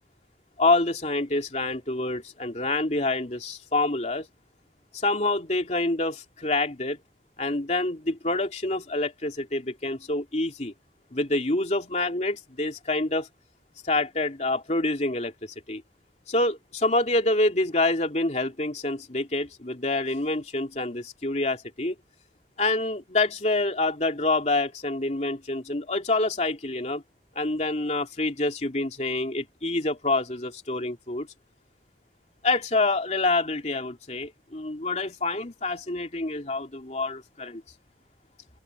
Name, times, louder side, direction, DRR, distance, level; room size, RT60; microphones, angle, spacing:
voice 1, 0.6-4.3 4.9-7.0 7.4-10.7 11.1-13.3 13.8-15.8 16.3-21.9 22.6-27.0 27.3-31.3 32.4-37.6, left 2 dB, 40° left, 2.9 m, -27 dB
head